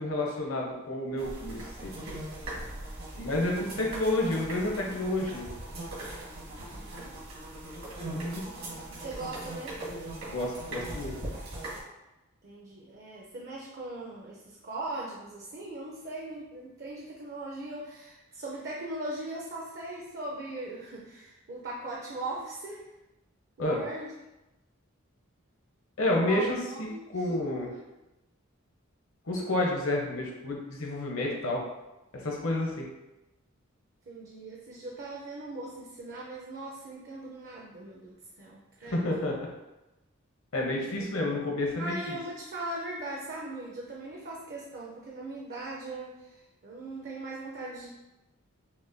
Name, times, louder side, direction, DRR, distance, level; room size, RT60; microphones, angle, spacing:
voice 1, 0.0-1.9 3.2-5.4 8.1-8.5 10.3-11.1 23.6-23.8 26.0-27.7 29.3-31.6 32.2-32.9 38.9-39.4 40.5-42.2, left 1 dB, 70° left, -1 dB, 0.9 m, -30 dB
sound 1, 1.2-11.8, right 1 dB, 70° right, 1.5 m, -40 dB
voice 2, 3.1-3.6 6.6-7.2 8.2-9.8 12.4-22.9 23.6-24.1 26.3-27.3 27.6-27.9 31.2-31.6 34.1-39.1 40.9-41.0 41.8-47.9, right 2 dB, 50° right, -3 dB, 0.5 m, -40 dB
5.9 x 2.2 x 2.6 m, 0.99 s
head